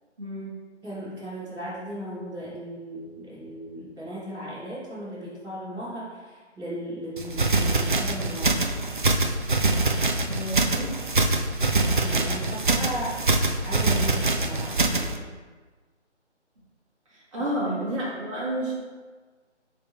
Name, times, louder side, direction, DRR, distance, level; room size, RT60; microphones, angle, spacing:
voice 1, 0.2-0.5 10.3-10.9 17.1-18.7, right 1 dB, 25° right, -8 dB, 1.8 m, -30 dB
voice 2, 0.8-8.8 12.0-13.3 13.6-15.2 17.4-17.9, equal, 5° right, -19 dB, 1.5 m, -37 dB
sound 1, 7.2-15.2, right 2 dB, 45° right, 0.5 m, -24 dB
9.3 x 3.5 x 3.2 m, 1.4 s
figure-of-eight pair, 155°, 36 cm